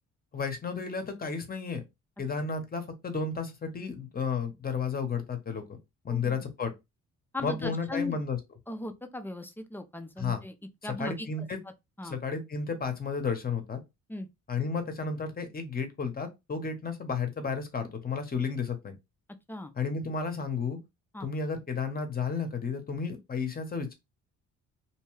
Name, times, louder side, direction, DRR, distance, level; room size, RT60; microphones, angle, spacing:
voice 1, 0.3-1.8 2.2-5.6 6.0-6.7 7.4-8.4 10.2-10.4 11.0-11.6 12.0-13.8 14.5-18.9 19.8-20.8 21.2-23.9, left 5 dB, 30° left, 0.8 m, -32 dB
voice 2, 6.1-6.5 7.3-8.2 8.7-10.5 10.8-11.5 12.0-12.2 14.1-14.3 19.5-19.7 21.1-21.3, left 2 dB, 5° left, 0.4 m, -38 dB
2.8 x 2.2 x 3.1 m
cardioid pair, 90°, 30 cm